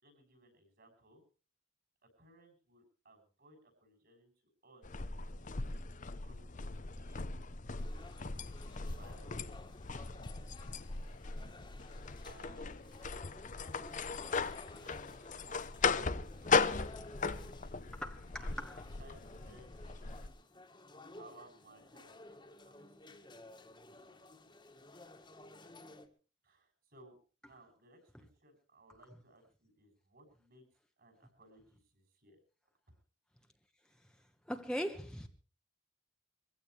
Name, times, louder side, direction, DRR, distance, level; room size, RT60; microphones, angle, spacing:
voice 1, 0.0-1.2 2.0-4.3 4.6-5.9 6.2-7.3 8.1-9.6 11.9-13.0 14.7-16.1 16.4-17.6 18.4-20.3 21.1-22.9 26.4-27.2 27.4-30.6 31.0-32.4, right 2 dB, 55° right, 7.3 m, -62 dB
sound 1, 4.8-20.3, left 4 dB, 40° left, 0.8 m, -38 dB
sound 2, 7.8-26.1, left 2 dB, 25° left, 1.9 m, -55 dB
voice 2, 17.9-18.8 34.5-35.3, equal, 5° left, 1.2 m, -40 dB
24.0 x 16.0 x 3.3 m
head